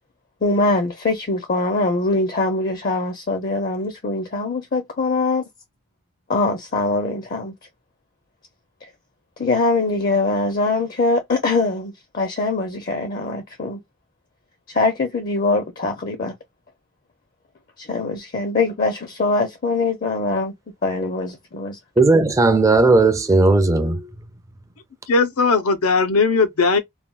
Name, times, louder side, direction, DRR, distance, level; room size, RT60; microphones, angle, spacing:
voice 1, 0.4-5.4 6.3-7.5 9.4-13.8 14.7-16.3 17.8-20.5 20.8-21.8, left 3 dB, 40° left, 0.5 m, -22 dB
voice 2, 22.0-24.0, right 3 dB, 15° right, 0.3 m, -15 dB
voice 3, 25.1-26.8, left 4 dB, 90° left, 0.6 m, -18 dB
3.3 x 2.2 x 2.2 m
head